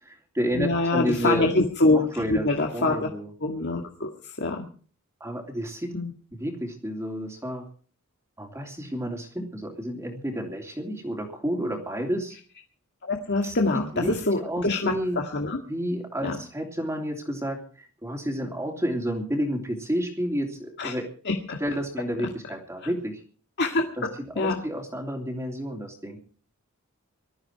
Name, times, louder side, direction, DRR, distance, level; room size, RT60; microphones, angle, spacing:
voice 1, 0.0-1.5 1.9-2.5 2.7-3.3 5.2-5.9 6.4-7.6 8.4-12.4 13.4-13.5 13.9-14.1 14.4-15.2 15.7-21.1 21.6-23.2 24.0-24.1 24.3-26.2, equal, 15° right, 0 dB, 3.1 m, -30 dB
voice 2, 0.5-2.0 2.3-3.1 3.4-4.7 5.9-6.1 13.0-15.6 16.2-16.4 20.8-20.9 21.3-21.6 22.8-22.9 23.6-23.8 24.4-24.6, left 2 dB, 50° left, 1 dB, 2.0 m, -25 dB
19.5 x 13.5 x 4.7 m, 0.42 s
head